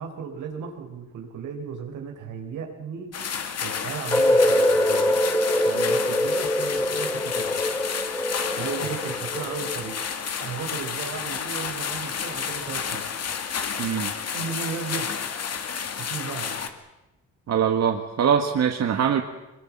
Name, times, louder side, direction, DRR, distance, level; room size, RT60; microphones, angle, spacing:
voice 1, 0.0-3.1 3.6-5.2 5.7-7.6 8.6-10.0 10.4-13.1 14.3-15.1 16.0-16.6, right 6 dB, 80° right, 4 dB, 4.2 m, -35 dB
sound 1, 3.1-16.7, left 7 dB, 55° left, 2.3 m, -31 dB
sound 2, 4.1-10.0, left 1 dB, 10° left, 3.4 m, -23 dB
voice 2, 13.8-14.1 17.5-19.2, right 8 dB, 60° right, 5 dB, 1.7 m, -22 dB
24.0 x 22.0 x 7.4 m, 0.98 s
cardioid pair, 90°, 30 cm